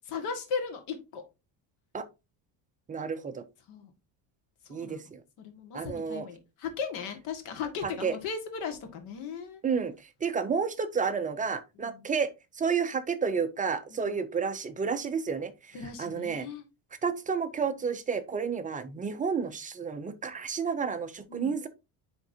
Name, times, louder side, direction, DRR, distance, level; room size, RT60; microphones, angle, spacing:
voice 1, 0.1-1.2 3.7-3.9 4.7-5.0 5.4-9.6 11.9-12.1 13.9-14.1 15.7-16.6 21.3-21.5, left 6 dB, 85° left, 6 dB, 1.8 m, -37 dB
voice 2, 2.9-3.4 4.7-5.2 5.7-6.3 7.8-8.2 9.6-16.5 17.0-21.7, right 6 dB, 20° right, 8 dB, 0.3 m, -31 dB
10.0 x 3.6 x 2.7 m, 0.26 s
cardioid pair, 150°, 48 cm